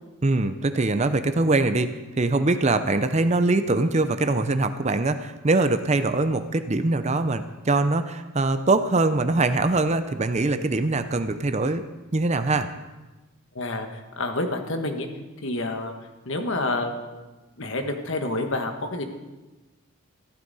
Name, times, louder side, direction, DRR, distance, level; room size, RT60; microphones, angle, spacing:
voice 1, 0.2-11.8 12.1-12.7, right 2 dB, 30° right, 10 dB, 0.6 m, -23 dB
voice 2, 13.5-13.9 14.2-15.1 15.4-15.9 16.2-17.2 17.6-19.0, left 2 dB, 60° left, 5 dB, 1.4 m, -28 dB
15.0 x 13.0 x 4.1 m, 1.1 s
head